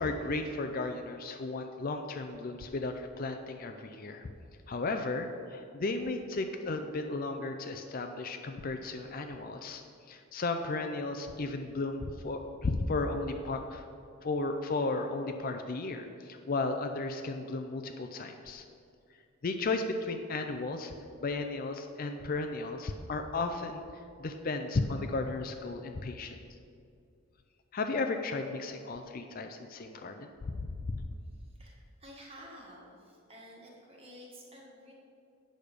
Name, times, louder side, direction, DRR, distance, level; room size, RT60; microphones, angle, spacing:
voice 1, 0.0-4.3 4.7-9.8 10.1-13.9 14.2-18.6 19.4-20.9 21.2-26.4 27.7-31.1, left 3 dB, 40° left, 6 dB, 0.4 m, -34 dB
voice 2, 31.3-34.9, equal, 25° right, -3 dB, 1.6 m, -52 dB
8.7 x 6.4 x 5.0 m, 2.4 s
head